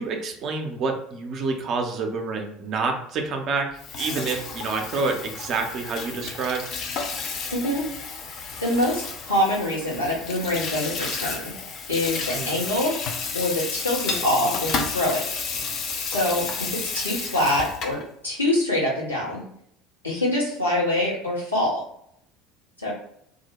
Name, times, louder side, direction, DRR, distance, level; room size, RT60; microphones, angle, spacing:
voice 1, 0.0-3.7 4.0-6.6 12.3-12.5, right 4 dB, 45° right, 4 dB, 0.5 m, -28 dB
Water tap faucet / Sink (filling or washing), 3.7-18.0, left 5 dB, 45° left, 0.4 m, -32 dB
voice 2, 7.5-7.9 8.3-8.4 8.6-11.5 11.9-15.2 16.1-18.0 18.2-19.4 20.0-21.8 22.8-22.9, left 1 dB, 85° left, -6 dB, 0.9 m, -25 dB
2.3 x 2.0 x 2.9 m, 0.71 s
figure-of-eight pair, 65°, 0 cm